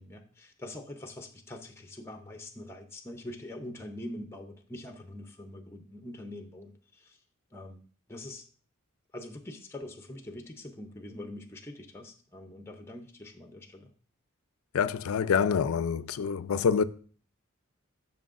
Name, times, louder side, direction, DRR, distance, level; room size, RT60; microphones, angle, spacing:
voice 1, 0.0-7.2 7.5-7.8 8.1-8.5 9.1-13.9, left 1 dB, 10° left, 0.6 m, -44 dB
voice 2, 14.7-16.8, left 6 dB, 90° left, 0.4 m, -26 dB
11.0 x 6.1 x 2.5 m
head